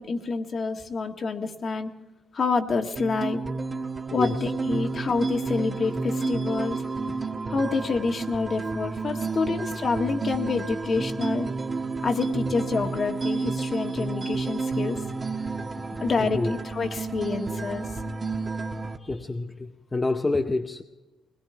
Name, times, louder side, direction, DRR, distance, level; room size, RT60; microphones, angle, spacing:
voice 1, 0.0-1.9 2.3-3.4 4.1-6.8 7.5-11.5 12.0-15.0 16.0-17.9, left 4 dB, 45° left, 1.8 m, -27 dB
sound 1, 3.0-19.0, right 3 dB, 30° right, 1.4 m, -31 dB
voice 2, 16.2-16.5 19.0-20.8, left 2 dB, 25° left, 0.8 m, -28 dB
20.5 x 20.5 x 3.4 m
cardioid pair, 90°, 0 cm